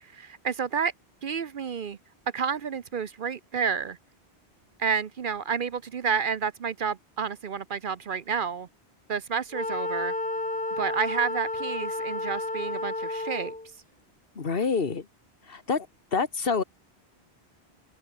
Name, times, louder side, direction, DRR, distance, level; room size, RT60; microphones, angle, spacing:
voice 1, 0.0-0.9 1.2-2.0 2.3-4.0 4.8-8.7 9.1-10.1 10.8-13.5, right 6 dB, 55° right, 0.8 m, -30 dB
Wind instrument woodwind instrument, 9.5-13.7, left 2 dB, 15° left, 0.4 m, -31 dB
voice 2, 14.4-15.1 15.5-15.9 16.1-16.6, left 5 dB, 60° left, 1.7 m, -27 dB
open air
omnidirectional pair, 1.1 m